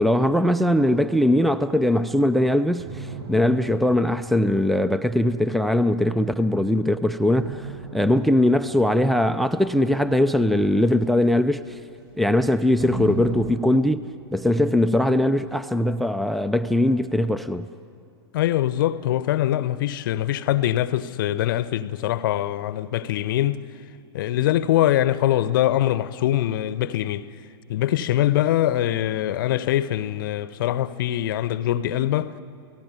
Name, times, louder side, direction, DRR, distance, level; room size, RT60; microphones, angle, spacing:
voice 1, 0.0-11.8 12.1-17.7, left 1 dB, ahead, 0.5 m, -21 dB
sound 1, 2.8-6.5 7.3-12.3 12.8-13.6, right 5 dB, 45° right, 7.0 m, -39 dB
voice 2, 18.3-23.6 24.1-27.3 27.7-32.3, left 13 dB, 50° left, 0.8 m, -23 dB
28.5 x 18.0 x 9.5 m
figure-of-eight pair, 100°, 14 cm